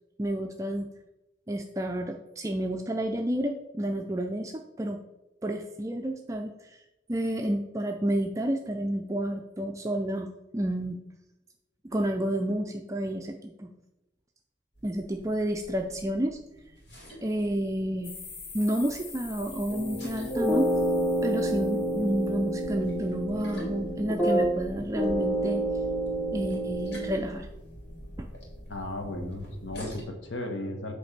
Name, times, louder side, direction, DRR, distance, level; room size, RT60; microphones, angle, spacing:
voice 1, 0.2-0.9 1.5-5.0 5.4-6.8 7.1-11.0 11.9-13.7 14.8-16.4 17.2-18.1 18.5-20.7 21.2-25.6 26.3-27.5 28.2-28.3, right 1 dB, 15° right, 4 dB, 0.3 m, -30 dB
sound 1, 14.7-30.0, equal, 65° left, 2.5 m, -45 dB
sound 2, 18.0-22.4, left 4 dB, 45° left, 1.1 m, -46 dB
sound 3, 19.7-24.7 25.0-27.1, right 1 dB, 10° left, 0.9 m, -28 dB
voice 2, 28.7-30.9, left 1 dB, 80° left, 4 dB, 1.2 m, -35 dB
8.0 x 3.3 x 5.8 m, 0.97 s
head